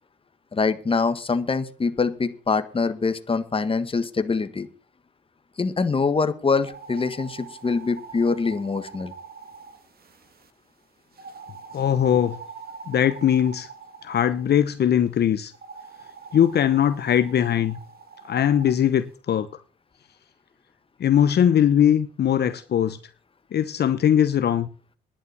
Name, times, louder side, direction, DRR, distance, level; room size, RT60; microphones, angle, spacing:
voice 1, 0.5-4.7 5.6-9.1, left 4 dB, 25° left, 10 dB, 1.5 m, -24 dB
sound 1, 6.6-10.5 11.2-14.5 15.5-18.8, right 5 dB, 50° right, 2.4 m, -43 dB
voice 2, 11.7-12.4 12.9-13.7 14.0-15.5 16.3-17.8 18.2-19.5 21.0-23.0 23.5-24.7, left 9 dB, 55° left, 11 dB, 1.0 m, -20 dB
11.0 x 10.0 x 6.9 m, 0.40 s
cardioid pair, 90°, 20 cm